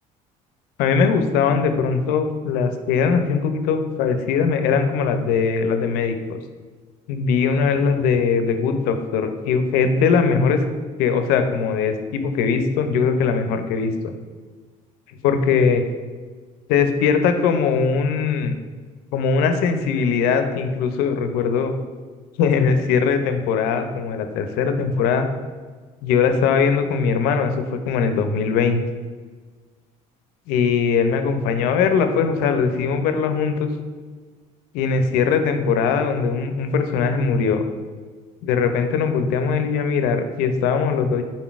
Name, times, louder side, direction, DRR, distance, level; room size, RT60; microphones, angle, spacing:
voice 1, 0.8-6.1 7.1-10.6 11.0-14.1 15.2-15.8 16.7-18.5 19.1-21.7 22.4-25.3 26.0-28.8 30.5-33.7 34.7-37.6 38.4-41.2, left 5 dB, 80° left, 8 dB, 0.4 m, -20 dB
3.9 x 3.8 x 2.4 m, 1.5 s
cardioid pair, 130°, 16 cm